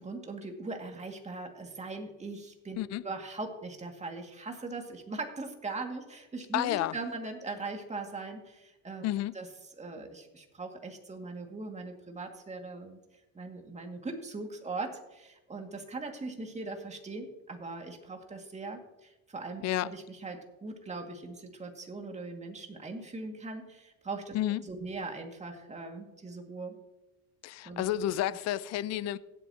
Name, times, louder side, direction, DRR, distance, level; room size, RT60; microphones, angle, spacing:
voice 1, 0.0-9.5 9.8-13.0 13.3-24.4 24.6-26.8 27.6-27.8, right 3 dB, 20° right, 2.1 m, -40 dB
voice 2, 6.5-7.0 9.0-9.3 19.6-19.9 24.3-24.6 27.4-29.2, left 13 dB, 55° left, 0.5 m, -30 dB
16.5 x 8.3 x 2.9 m
cardioid pair, 100°, 31 cm